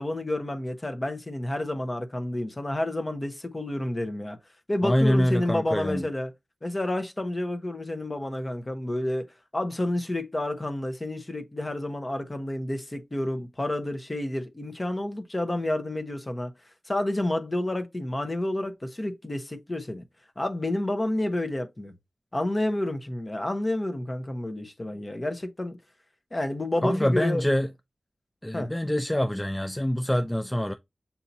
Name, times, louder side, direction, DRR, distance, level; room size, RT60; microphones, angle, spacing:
voice 1, 0.0-4.4 4.7-6.3 6.6-9.2 9.5-16.5 16.9-20.0 20.4-21.9 22.3-25.8 26.3-27.4 28.5-28.7, left 1 dB, 30° left, 0.9 m, -29 dB
voice 2, 4.8-6.1 26.8-27.7 28.4-30.7, equal, 10° left, 0.3 m, -25 dB
7.1 x 2.8 x 2.6 m
cardioid pair, 55°, 0 cm